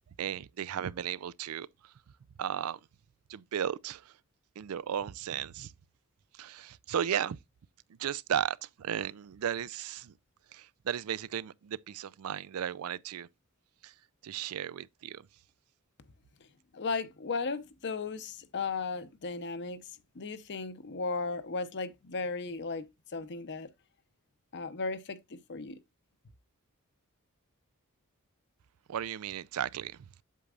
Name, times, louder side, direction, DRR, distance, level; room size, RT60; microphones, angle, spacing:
voice 1, 0.2-1.7 2.4-2.8 3.3-4.0 4.6-5.7 6.4-7.4 8.0-10.1 10.5-13.3 13.8-13.9 14.2-15.3 28.9-29.9, right 9 dB, 70° right, 0.4 m, -35 dB
voice 2, 16.7-23.7 24.5-25.8, left 4 dB, 50° left, 0.8 m, -36 dB
8.3 x 7.0 x 2.4 m
head